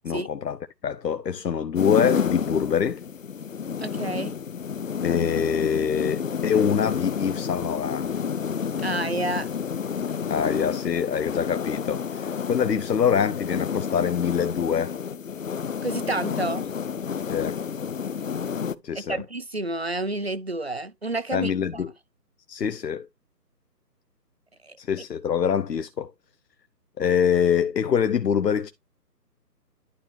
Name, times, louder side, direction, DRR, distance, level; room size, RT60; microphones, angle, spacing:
voice 1, 0.0-3.0 5.0-8.1 10.3-14.9 17.3-17.6 18.8-19.2 21.3-21.9 22.5-23.1 24.8-26.1 27.0-28.7, left 7 dB, 75° left, 0.9 m, -25 dB
sound 1, 1.8-18.8, left 7 dB, 55° left, 0.5 m, -30 dB
voice 2, 3.8-4.3 8.8-9.5 15.8-16.7 18.9-21.8 24.6-24.8, right 2 dB, 45° right, 0.4 m, -30 dB
11.5 x 4.3 x 3.3 m
figure-of-eight pair, 165°, 49 cm